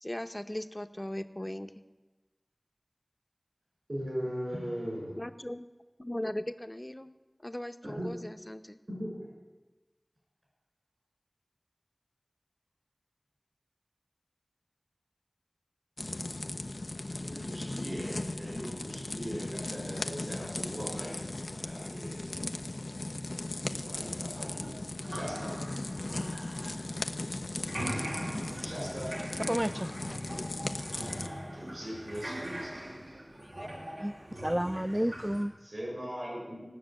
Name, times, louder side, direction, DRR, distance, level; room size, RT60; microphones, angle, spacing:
voice 1, 0.0-1.7 5.2-5.7 6.0-7.1 7.4-8.8 30.1-30.4, left 1 dB, 30° left, 9 dB, 0.7 m, -38 dB
voice 2, 3.9-5.2 7.8-8.0 8.9-9.3 17.2-21.2 21.5-22.2 23.7-24.8 25.1-25.5 28.6-29.2 31.5-32.7 35.6-36.6, equal, 70° right, -4 dB, 6.2 m, -39 dB
sound 1, 16.0-31.3, left 2 dB, 85° left, 0.6 m, -37 dB
sound 2, 24.3-27.3 27.6-35.4, equal, 90° right, 2.8 m, -42 dB
voice 3, 29.2-30.2 33.3-33.7 34.0-34.1 34.4-35.5, equal, 15° right, 14 dB, 0.5 m, -32 dB
18.5 x 6.3 x 9.0 m, 1.2 s
wide cardioid pair, 40°, 0 cm